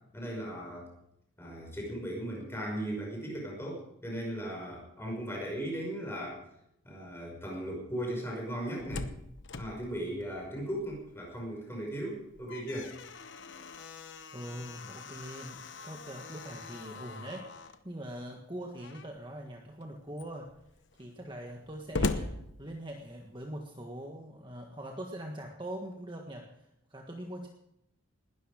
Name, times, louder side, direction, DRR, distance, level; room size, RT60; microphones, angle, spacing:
voice 1, 0.1-0.9 1.4-6.4 6.8-9.1 9.6-13.0, right 1 dB, 10° left, -1 dB, 5.6 m, -37 dB
Slam, 8.5-11.3 11.6-11.7 12.2-17.8 18.7-19.3 19.8-19.9 20.1-23.2, left 3 dB, 55° left, 1.0 m, -40 dB
voice 2, 14.3-20.5 21.0-27.5, right 1 dB, 20° right, 1 dB, 1.6 m, -43 dB
20.0 x 13.0 x 5.0 m, 0.80 s
head